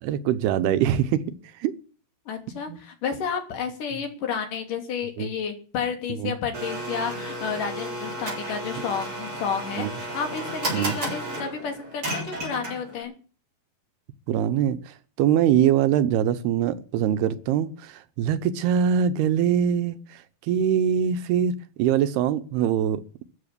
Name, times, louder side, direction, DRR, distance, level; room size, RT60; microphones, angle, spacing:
voice 1, 0.0-1.7 2.7-2.8 5.2-5.3 6.2-6.3 9.8-9.9 10.7-11.0 14.3-23.2, right 9 dB, 85° right, 2.9 m, -23 dB
voice 2, 2.3-13.1, left 6 dB, 55° left, 4.7 m, -31 dB
Domestic sounds home sounds, 6.5-13.0, right 1 dB, 30° right, 7.7 m, -33 dB
14.5 x 8.6 x 9.9 m
omnidirectional pair, 4.5 m